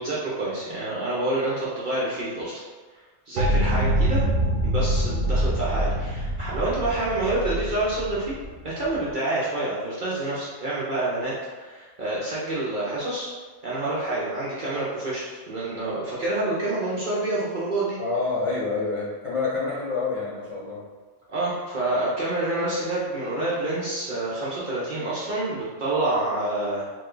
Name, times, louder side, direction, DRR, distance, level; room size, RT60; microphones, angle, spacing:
voice 1, 0.0-2.6 3.3-4.2 4.6-8.3 8.6-13.3 13.6-18.0 21.3-26.8, right 2 dB, 50° right, -7 dB, 0.7 m, -27 dB
sound 1, 3.4-9.1, right 1 dB, 80° right, 0.9 m, -25 dB
voice 2, 18.0-20.8, left 4 dB, 30° left, -9 dB, 0.8 m, -27 dB
3.0 x 2.2 x 3.6 m, 1.4 s
omnidirectional pair, 1.2 m